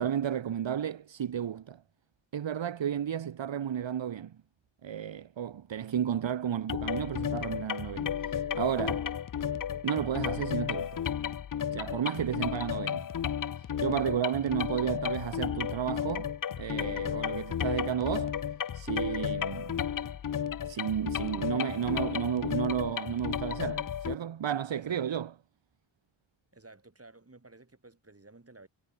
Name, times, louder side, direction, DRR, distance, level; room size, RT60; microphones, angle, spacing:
voice 1, 0.0-1.8 2.3-4.4 4.8-9.1 9.8-11.0 11.7-13.1 13.6-18.4 18.7-19.8 20.6-25.3, right 9 dB, 65° right, 1.0 m, -32 dB
sound 1, 6.7-24.1, left 9 dB, 45° left, 0.5 m, -33 dB
voice 2, 12.1-12.5 24.8-25.2 26.5-28.7, right 2 dB, 30° right, 6.1 m, -54 dB
wide cardioid pair, 105°, 48 cm